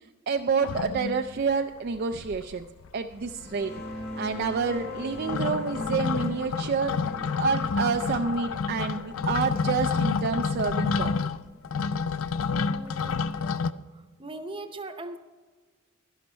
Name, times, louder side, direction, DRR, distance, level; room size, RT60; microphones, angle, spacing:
voice 1, 0.3-2.7 2.9-3.7 4.2-6.9 7.4-11.1, right 5 dB, 45° right, 6 dB, 0.4 m, -28 dB
sound 1, 0.6-1.5 1.9-2.0 2.2-2.9 3.1-13.7, left 5 dB, 75° left, 0.4 m, -29 dB
sound 2, 3.2-12.5, left 2 dB, 50° left, 1.8 m, -40 dB
voice 2, 12.5-13.3 13.9-15.2, right 2 dB, 25° right, 8 dB, 0.8 m, -40 dB
11.5 x 11.5 x 4.4 m, 1.4 s
head